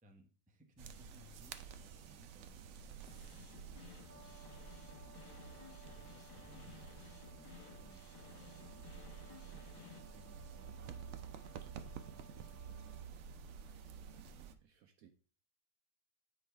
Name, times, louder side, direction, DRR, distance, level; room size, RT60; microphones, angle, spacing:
voice 1, 0.0-4.7 5.8-8.8 9.4-11.1 11.8-13.8, right 1 dB, 10° right, 0.4 m, -64 dB
sound 1, 0.8-14.5, right 7 dB, 85° right, 0.6 m, -51 dB
sound 2, 3.1-10.0, left 7 dB, 70° left, 1.6 m, -57 dB
Brass instrument, 4.1-13.1, equal, 55° right, 1.8 m, -63 dB
voice 2, 14.2-15.1, right 9 dB, 70° right, 0.9 m, -64 dB
7.8 x 4.9 x 3.3 m
omnidirectional pair, 1.9 m